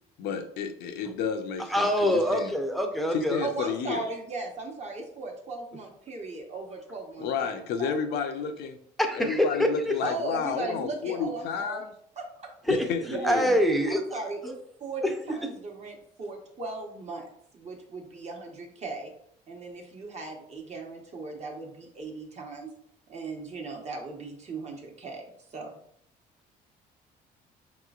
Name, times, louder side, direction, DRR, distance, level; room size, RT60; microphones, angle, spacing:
voice 1, 0.2-2.5 3.1-4.0 7.2-8.8 9.2-11.9 12.7-13.6, left 6 dB, 80° left, 0.5 m, -31 dB
voice 2, 1.7-3.4 9.0-10.0 12.7-12.9 13.2-14.0 15.0-15.5, equal, ahead, 0.6 m, -25 dB
voice 3, 3.4-8.2 10.0-11.8 12.2-12.5 13.0-13.4 13.9-19.1 19.5-22.7 23.1-25.8, right 3 dB, 40° right, 1.0 m, -37 dB
5.0 x 3.0 x 2.4 m
cardioid pair, 110°, 17 cm